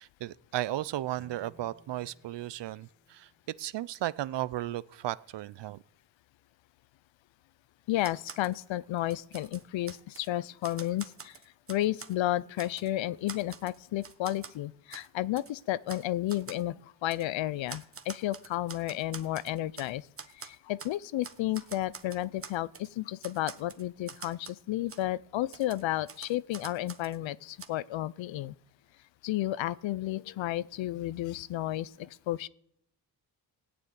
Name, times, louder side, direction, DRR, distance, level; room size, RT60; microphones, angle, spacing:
voice 1, 0.0-3.3 3.6-5.8, right 14 dB, 65° right, 0.6 m, -35 dB
sound 1, 1.1-4.4, right 3 dB, 10° right, 2.9 m, -62 dB
voice 2, 7.9-11.4 11.7-20.0 20.4-28.5 29.2-32.5, left 14 dB, 80° left, 0.6 m, -32 dB
Typewriter, 8.0-8.6 9.0-10.3 10.6-12.2 12.6-12.9 13.3-14.6 14.9-15.1 15.4-15.5 15.9-16.0 16.3-16.6 17.1-17.3 17.7-19.9 20.2-21.0 21.2-22.9 23.2-24.6 24.9-25.0 25.5-27.2 27.6-27.7, right 5 dB, 30° right, 1.1 m, -46 dB
16.0 x 6.9 x 9.4 m
cardioid pair, 80°, 45 cm